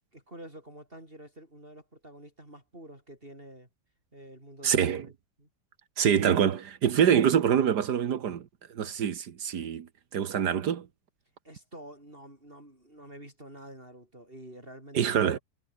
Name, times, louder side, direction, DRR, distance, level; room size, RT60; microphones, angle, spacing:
voice 1, 0.1-3.7 4.1-5.1 5.4-5.5 11.4-15.4, right 1 dB, 30° right, 6.7 m, -48 dB
voice 2, 4.6-5.1 6.0-10.9 14.9-15.4, right 8 dB, 75° right, 1.8 m, -25 dB
omnidirectional pair, 1.8 m